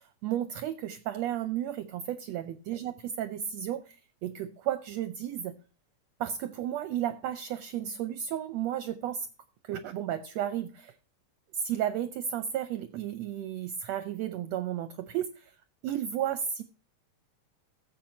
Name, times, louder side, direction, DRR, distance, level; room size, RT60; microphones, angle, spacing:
voice 1, 0.2-4.0 4.2-5.5 6.2-9.3 9.6-10.9 11.5-15.4 15.8-16.6, right 10 dB, 75° right, 12 dB, 1.6 m, -33 dB
14.5 x 7.8 x 2.8 m, 0.34 s
omnidirectional pair, 3.6 m